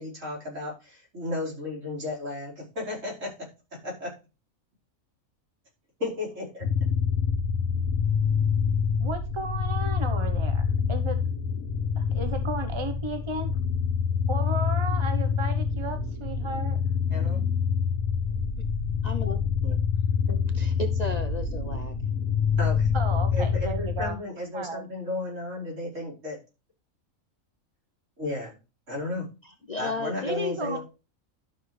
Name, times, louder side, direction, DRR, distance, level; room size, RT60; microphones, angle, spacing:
voice 1, 0.0-3.3 3.8-4.1 6.0-6.6 17.1-17.4 19.6-19.8 20.3-20.5 22.6-22.9 23.3-26.4 28.2-28.6 28.9-29.3 29.8-30.8, left 2 dB, 60° right, -4 dB, 5.3 m, -34 dB
sound 1, 6.6-24.1, left 6 dB, 85° left, 1.7 m, -26 dB
voice 2, 9.0-11.3 12.0-13.5 14.3-16.8 22.9-24.2 24.5-24.9 30.3-30.8, right 2 dB, 25° right, 8 dB, 0.9 m, -34 dB
voice 3, 19.0-19.4 20.5-22.0 29.4-30.8, left 3 dB, 35° left, 5 dB, 0.7 m, -33 dB
12.0 x 6.2 x 3.3 m, 0.30 s
omnidirectional pair, 1.5 m